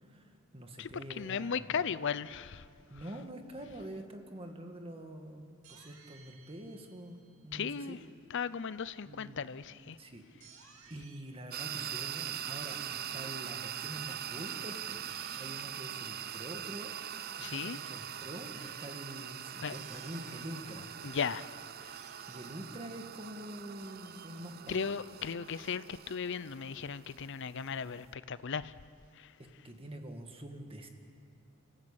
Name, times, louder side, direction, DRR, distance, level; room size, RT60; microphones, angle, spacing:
voice 1, 0.0-1.7 2.9-5.4 5.7-7.2 7.4-8.0 9.1-9.4 10.0-10.2 10.9-15.1 15.4-16.9 17.3-20.9 22.3-24.9 29.6-30.9, right 1 dB, 25° right, 1.9 m, -45 dB
voice 2, 0.8-2.6 7.5-8.0 8.3-10.0 17.4-17.8 19.6-19.8 21.0-21.5 21.8-21.9 24.7-28.7 29.2-29.3, left 6 dB, 55° left, 0.6 m, -36 dB
sound 1, 5.6-7.6 10.4-11.2 12.7-13.4 15.0-15.6 17.3-18.2 19.7-20.8 21.9-23.1, right 6 dB, 75° right, 2.3 m, -59 dB
sound 2, 11.5-28.1, right 10 dB, 45° right, 0.6 m, -42 dB
28.5 x 15.0 x 8.9 m
head